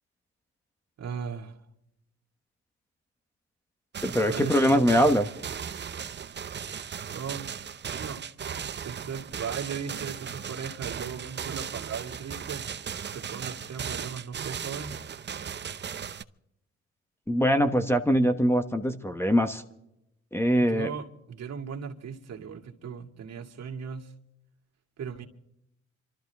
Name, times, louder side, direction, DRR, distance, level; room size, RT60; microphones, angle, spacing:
voice 1, 1.0-1.6 4.3-5.0 7.1-7.5 7.9-8.2 8.8-12.7 13.1-15.0 20.6-24.1 25.0-25.3, right 6 dB, 60° right, 2.2 m, -37 dB
sound 1, 3.9-16.2, right 7 dB, 35° right, 0.7 m, -37 dB
voice 2, 4.0-5.3 17.3-19.6 20.3-20.9, equal, 10° left, 1.1 m, -23 dB
26.5 x 13.0 x 3.5 m
cardioid pair, 90°, 30 cm